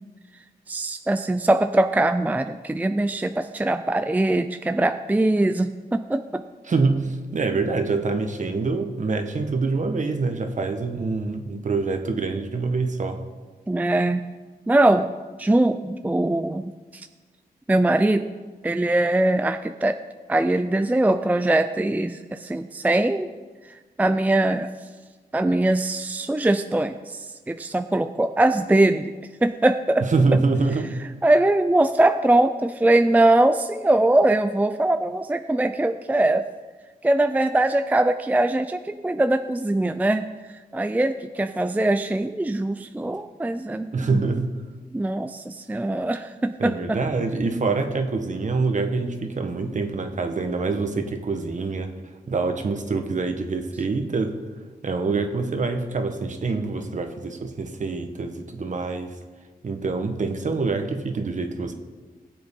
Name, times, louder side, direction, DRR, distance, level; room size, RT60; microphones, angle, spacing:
voice 1, 0.7-6.4 13.7-14.2 14.7-15.1 15.4-17.1 17.7-18.3 18.6-20.0 20.3-23.3 24.0-24.7 25.3-29.1 29.4-30.1 31.2-36.4 37.0-40.2 40.7-44.2 44.9-47.0, right 1 dB, 10° right, 9 dB, 0.4 m, -22 dB
voice 2, 6.7-13.2 30.0-30.9 43.9-44.5 46.6-51.9 52.3-54.4 54.8-59.2 59.6-61.7, right 3 dB, 50° right, 6 dB, 1.3 m, -25 dB
19.0 x 7.7 x 3.8 m, 1.3 s
cardioid pair, 85°, 16 cm